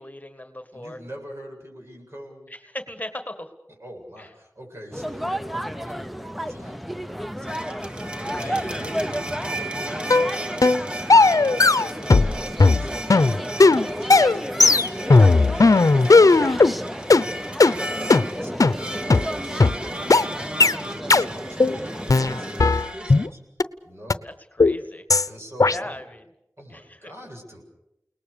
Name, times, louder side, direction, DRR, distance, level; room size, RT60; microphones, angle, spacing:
voice 1, 0.0-1.0 2.5-3.5 4.2-4.3 8.3-8.6 24.2-25.0 25.6-26.2 26.7-27.1, left 1 dB, 25° left, 8 dB, 1.8 m, -38 dB
voice 2, 0.7-2.5 3.8-8.1 8.4-23.4 23.8-24.2 25.3-26.0 26.6-27.6, equal, 45° right, 1 dB, 7.9 m, -43 dB
sound 1, 4.9-22.7, equal, ahead, 0.8 m, -32 dB
sound 2, 7.5-23.3, right 1 dB, 15° right, 1.8 m, -36 dB
sound 3, 10.1-10.3 10.6-10.8 11.1-12.3 12.6-16.7 17.1-17.2 17.6-17.7 18.1-18.2 18.6-18.7 19.1-19.2 19.6-19.7 20.1-20.2 20.6-20.8 21.1-21.3 21.6-21.8 22.1-23.3 23.6-23.7 24.1-24.2 24.6-24.8 25.1-25.3 25.6-25.8, left 3 dB, 70° left, 0.8 m, -15 dB
29.5 x 19.5 x 6.8 m, 0.87 s
wide cardioid pair, 60°, 6 cm